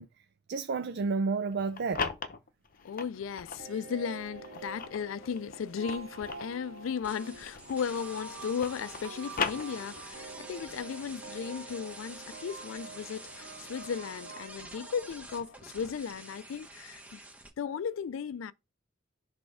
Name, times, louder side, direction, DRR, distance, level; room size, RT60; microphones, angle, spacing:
voice 1, 0.0-2.1, right 4 dB, 55° right, 0.4 m, -32 dB
sound 1, 1.5-3.7 4.2-8.0 8.3-10.2, left 5 dB, 45° left, 0.8 m, -38 dB
voice 2, 2.8-17.2 17.6-18.5, left 6 dB, 80° left, 0.4 m, -36 dB
sound 2, 3.6-16.0, right 4 dB, 90° right, 0.8 m, -48 dB
sound 3, 7.0-17.5, right 2 dB, 5° right, 1.0 m, -48 dB
6.2 x 3.4 x 4.9 m
head